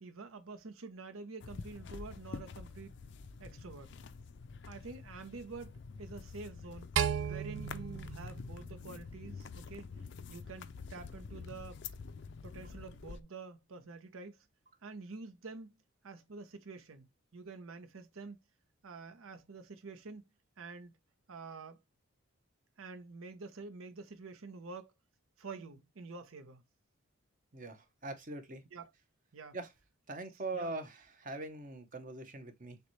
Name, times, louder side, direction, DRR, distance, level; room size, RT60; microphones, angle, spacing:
voice 1, 0.0-2.9 3.4-3.9 4.6-6.9 7.2-9.9 10.3-11.8 12.4-14.5 14.8-15.8 16.0-18.4 18.8-20.3 20.6-20.9 21.3-21.8 22.8-24.9 25.4-26.6 28.7-28.9 29.3-29.6 30.5-30.7, right 4 dB, 80° right, 0.7 m, -48 dB
sound 1, 1.4-13.2, left 5 dB, 55° left, 0.4 m, -47 dB
sound 2, 7.0-9.3, right 8 dB, 60° right, 0.3 m, -35 dB
voice 2, 27.5-28.6 29.5-29.7 30.1-32.8, right 2 dB, 40° right, 0.8 m, -42 dB
6.6 x 2.3 x 3.1 m
head